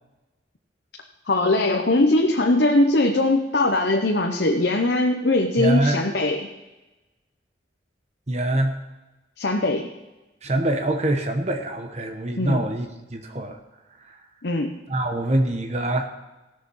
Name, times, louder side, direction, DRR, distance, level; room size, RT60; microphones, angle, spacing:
voice 1, 1.3-6.5 9.4-9.9 12.4-12.6 14.4-14.8, left 2 dB, 60° left, 3 dB, 0.9 m, -21 dB
voice 2, 5.6-6.0 8.3-8.7 10.4-13.6 14.9-16.1, right 1 dB, 35° right, 5 dB, 1.1 m, -24 dB
18.0 x 6.8 x 5.6 m, 1.1 s
head